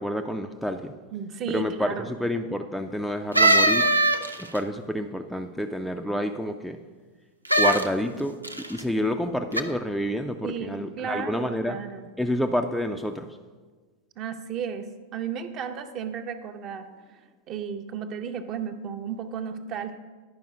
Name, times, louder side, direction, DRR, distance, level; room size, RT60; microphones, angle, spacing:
voice 1, 0.0-0.9 1.5-3.9 4.4-6.8 7.6-8.4 8.7-11.8 12.2-13.3, equal, ahead, 5 dB, 0.4 m, -28 dB
voice 2, 1.1-2.2 10.4-12.1 14.2-16.9 17.5-20.0, right 7 dB, 35° right, 7 dB, 0.7 m, -34 dB
sound 1, 3.3-4.6 7.4-7.9 8.4-8.8 9.5-9.6, right 2 dB, 85° right, 0.5 m, -20 dB
10.5 x 5.3 x 5.0 m, 1.4 s
figure-of-eight pair, 90°, 0 cm